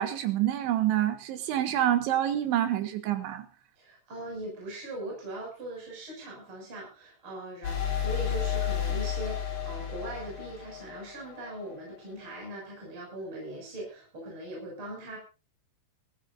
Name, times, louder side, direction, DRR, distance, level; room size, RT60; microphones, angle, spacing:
voice 1, 0.0-3.5, right 12 dB, 70° right, 9 dB, 3.7 m, -27 dB
voice 2, 3.8-15.2, right 1 dB, 25° right, -2 dB, 6.9 m, -40 dB
sound 1, 7.6-11.4, left 8 dB, 55° left, 6.1 m, -31 dB
22.0 x 15.0 x 2.6 m, 0.32 s
omnidirectional pair, 5.7 m